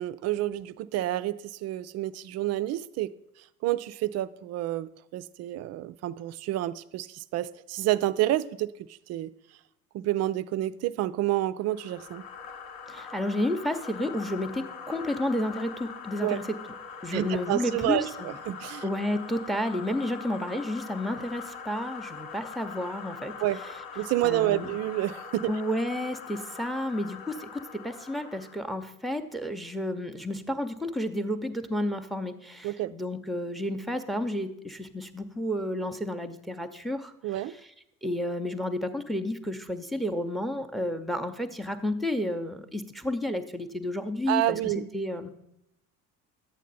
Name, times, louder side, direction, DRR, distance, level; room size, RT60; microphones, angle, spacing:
voice 1, 0.0-3.1 3.6-9.3 9.9-12.2 16.2-16.4 17.1-18.8 23.4-23.6 24.0-25.5 32.6-32.9 37.2-37.5 44.3-44.8, right 14 dB, 40° right, 15 dB, 0.4 m, -29 dB
sound 1, 11.7-28.7, left 6 dB, 55° left, 1.1 m, -42 dB
voice 2, 12.9-16.6 17.0-18.1 18.8-23.4 24.2-24.7 25.5-37.1 38.0-44.6 44.9-45.3, left 1 dB, ahead, 9 dB, 0.7 m, -31 dB
11.0 x 8.2 x 4.0 m, 0.81 s
figure-of-eight pair, 60°, 43 cm